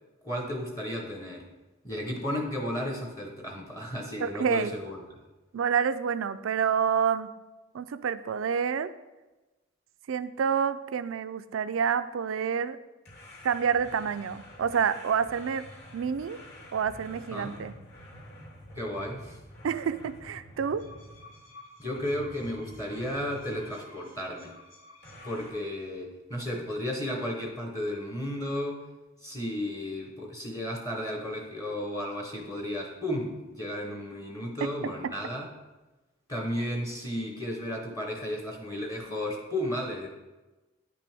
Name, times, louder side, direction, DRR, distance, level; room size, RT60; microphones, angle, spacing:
voice 1, 0.2-1.5 1.8-5.0 17.3-17.6 18.7-19.4 21.8-24.6 25.2-28.8 29.2-35.5 36.3-40.1, left 1 dB, 20° left, 1 dB, 0.9 m, -33 dB
voice 2, 4.2-4.7 5.5-7.3 7.7-8.9 10.1-12.8 13.4-15.6 15.9-16.4 16.7-17.7 19.6-20.8 34.6-34.7, right 7 dB, 90° right, 13 dB, 0.4 m, -28 dB
sound 1, 13.1-21.5 22.0-23.7 25.0-25.5, equal, 55° left, 2.8 m, -48 dB
sound 2, 20.6-25.9, left 1 dB, 70° left, 1.9 m, -53 dB
9.7 x 6.0 x 3.5 m, 1.1 s
head